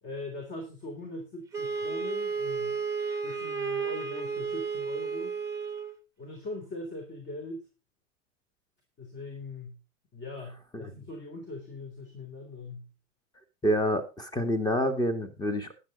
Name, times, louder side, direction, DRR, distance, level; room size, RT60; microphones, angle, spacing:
voice 1, 0.0-2.8 3.2-5.4 6.2-7.7 9.0-9.8 10.1-12.9, left 2 dB, 30° left, 4 dB, 3.3 m, -41 dB
Wind instrument woodwind instrument, 1.5-5.9, right 5 dB, 10° right, 1.3 m, -32 dB
voice 2, 13.6-15.7, equal, 10° left, 8 dB, 1.8 m, -27 dB
12.5 x 10.0 x 3.9 m, 0.29 s
hypercardioid pair, 115°, 39 cm